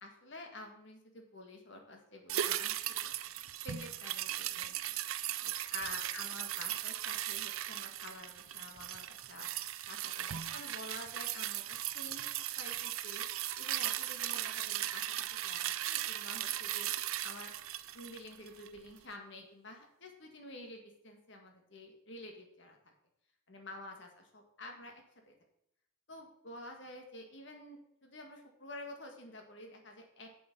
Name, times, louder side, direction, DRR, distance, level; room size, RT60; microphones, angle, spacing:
voice 1, 0.0-3.1 3.6-4.9 5.4-12.3 12.6-13.2 13.6-16.9 17.2-17.5 17.9-22.9 23.5-25.3 26.1-30.3, left 1 dB, 55° left, 3 dB, 1.8 m, -49 dB
sound 1, 2.3-18.8 19.1-19.2, right 12 dB, 85° right, 0.5 m, -38 dB
7.6 x 7.1 x 5.3 m, 0.79 s
head